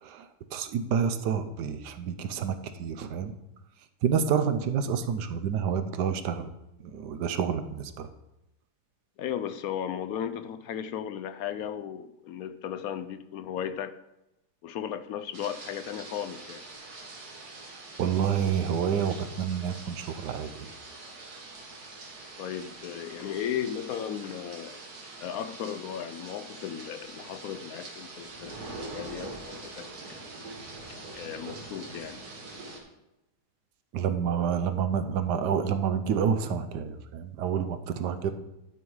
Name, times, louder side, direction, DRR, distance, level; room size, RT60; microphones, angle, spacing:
voice 1, 0.0-3.3 4.0-6.5 6.8-8.1 18.0-20.7 33.9-38.3, right 7 dB, 85° right, 10 dB, 1.4 m, -28 dB
voice 2, 9.2-14.0 14.6-16.6 22.4-24.8 25.2-30.2 31.1-32.2, left 9 dB, 70° left, 12 dB, 0.9 m, -36 dB
sound 1, 15.3-32.8, right 2 dB, 70° right, 2.1 m, -44 dB
11.5 x 5.4 x 4.7 m, 0.92 s
omnidirectional pair, 1.7 m